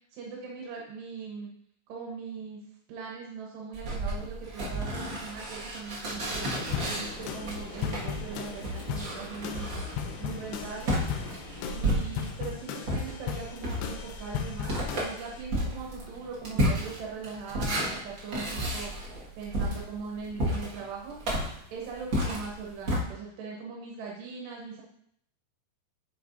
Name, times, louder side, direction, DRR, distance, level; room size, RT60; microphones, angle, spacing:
voice 1, 0.1-1.5 1.9-2.6 2.9-6.5 6.8-9.7 10.2-11.0 11.7-18.9 19.4-21.2 21.7-24.8, right 5 dB, 85° right, -2 dB, 3.3 m, -40 dB
sound 1, 3.7-12.5 12.8-23.0, equal, 45° right, 1.5 m, -32 dB
sound 2, 6.1-12.0, left 1 dB, 60° left, 3.0 m, -43 dB
sound 3, 6.7-15.4, left 8 dB, 85° left, 2.7 m, -37 dB
9.4 x 6.7 x 2.6 m, 0.69 s
omnidirectional pair, 4.7 m